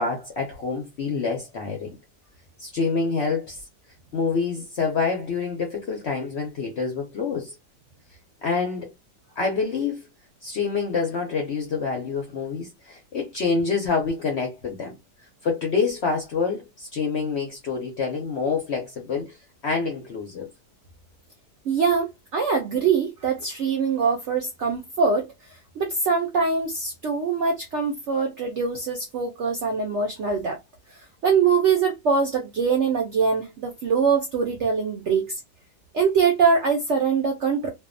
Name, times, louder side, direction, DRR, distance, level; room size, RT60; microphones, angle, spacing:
voice 1, 0.0-2.0 2.6-3.7 4.1-7.5 8.4-8.9 9.4-10.1 10.4-15.0 15.4-19.4 19.6-20.5, left 4 dB, 65° left, 0.6 m, -27 dB
voice 2, 21.7-30.6 30.9-35.4 35.9-37.7, right 5 dB, 75° right, 0.6 m, -23 dB
2.5 x 2.3 x 2.5 m
omnidirectional pair, 1.8 m